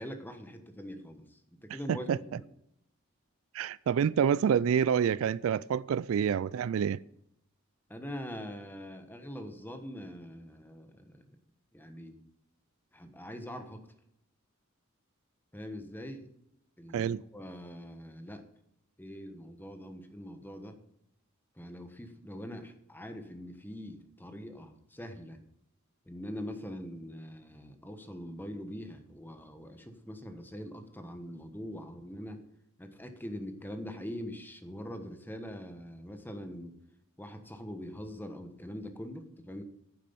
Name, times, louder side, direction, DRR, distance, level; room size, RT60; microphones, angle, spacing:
voice 1, 0.0-2.4 7.9-11.4 11.7-12.2 12.9-13.8 15.5-16.3 16.8-18.4 19.0-20.8 21.6-25.4 26.1-32.4 32.8-36.7 37.2-39.6, equal, 10° left, 1.1 m, -43 dB
voice 2, 3.5-7.0 16.9-17.2, right 7 dB, 70° right, 0.3 m, -27 dB
9.5 x 7.4 x 6.9 m
head